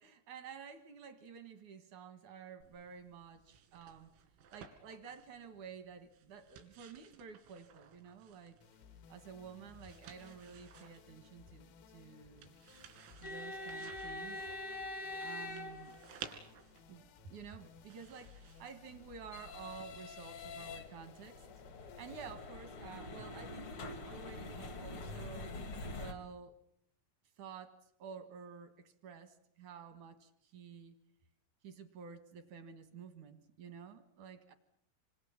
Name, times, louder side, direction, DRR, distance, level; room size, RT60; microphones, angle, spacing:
voice 1, 0.0-4.1 4.5-8.6 9.1-12.5 13.2-14.5 15.2-16.0 16.9-21.5 22.0-25.5 25.9-26.5 27.4-31.0 31.6-34.5, right 6 dB, 70° right, 10 dB, 1.9 m, -51 dB
sound 1, 2.6-19.8, right 8 dB, 85° right, 5.4 m, -57 dB
sound 2, 8.6-24.0, left 7 dB, 80° left, 4.3 m, -61 dB
sound 3, 13.2-16.4 18.5-26.1, left 2 dB, 60° left, 1.3 m, -45 dB
27.0 x 26.0 x 7.3 m, 0.68 s
omnidirectional pair, 6.0 m